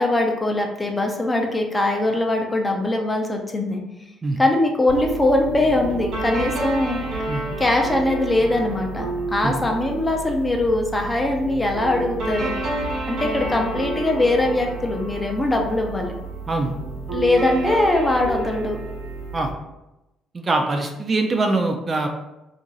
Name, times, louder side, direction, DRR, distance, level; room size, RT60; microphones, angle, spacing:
voice 1, 0.0-3.8 4.4-7.0 7.6-12.6 13.1-16.1 17.1-18.8, left 2 dB, 15° left, 2 dB, 0.6 m, -21 dB
sound 1, 4.9-19.5, right 2 dB, 70° right, 1.2 m, -30 dB
voice 2, 20.3-22.1, right 2 dB, 30° right, 3 dB, 0.4 m, -23 dB
2.9 x 2.5 x 4.0 m, 0.94 s
cardioid pair, 105°, 0 cm